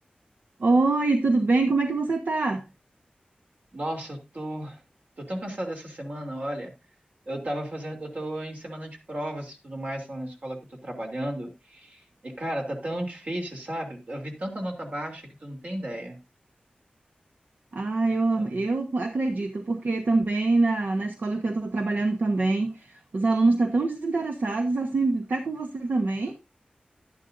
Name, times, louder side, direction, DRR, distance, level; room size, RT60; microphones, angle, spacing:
voice 1, 0.6-2.6 17.7-26.4, right 3 dB, 75° right, 1.1 m, -24 dB
voice 2, 3.7-4.8 5.2-6.7 7.3-16.2 18.3-18.7, right 1 dB, 55° right, 3.1 m, -34 dB
11.5 x 10.5 x 2.6 m
wide cardioid pair, 90°, 3 cm